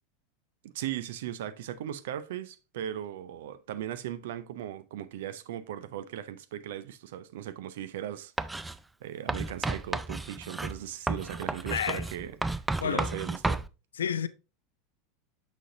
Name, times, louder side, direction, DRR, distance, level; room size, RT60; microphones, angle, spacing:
voice 1, 0.6-8.7 9.0-12.3 12.8-13.7, right 11 dB, 65° right, 0.5 m, -38 dB
Writing, 8.4-8.8 9.3-13.7, right 2 dB, 10° right, 0.3 m, -32 dB
voice 2, 11.7-12.0 12.8-13.1 13.9-14.3, left 8 dB, 75° left, 0.4 m, -30 dB
6.3 x 6.1 x 2.7 m
figure-of-eight pair, 80°, 0 cm